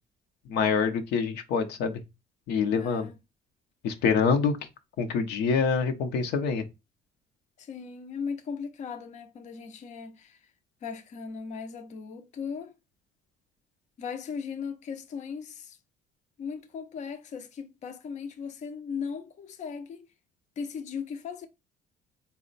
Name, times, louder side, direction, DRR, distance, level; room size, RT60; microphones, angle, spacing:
voice 1, 0.5-2.0 2.5-3.1 3.8-4.6 5.0-6.6, left 5 dB, 80° left, 0.7 m, -26 dB
voice 2, 2.7-3.1 7.6-10.5 10.8-12.7 14.0-15.8 16.4-20.1 20.6-21.5, left 6 dB, 45° left, 0.6 m, -37 dB
4.1 x 2.1 x 3.9 m
cardioid pair, 110°, 17 cm